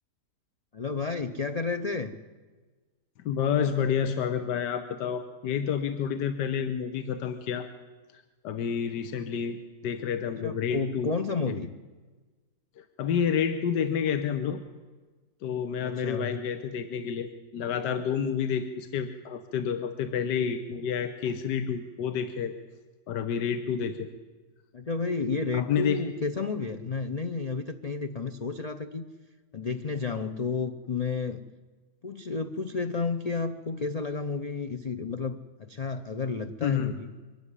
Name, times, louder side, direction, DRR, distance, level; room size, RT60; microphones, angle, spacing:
voice 1, 0.7-2.2 10.3-11.7 15.8-16.4 24.7-29.0 29.5-31.4 32.0-37.1, left 4 dB, 45° left, 6 dB, 0.5 m, -31 dB
voice 2, 3.2-7.7 8.1-9.6 9.8-11.1 12.8-14.6 15.4-22.5 23.1-24.1 25.5-26.0 36.6-36.9, left 7 dB, 80° left, 9 dB, 1.6 m, -29 dB
23.0 x 12.5 x 10.0 m, 1.4 s
omnidirectional pair, 1.8 m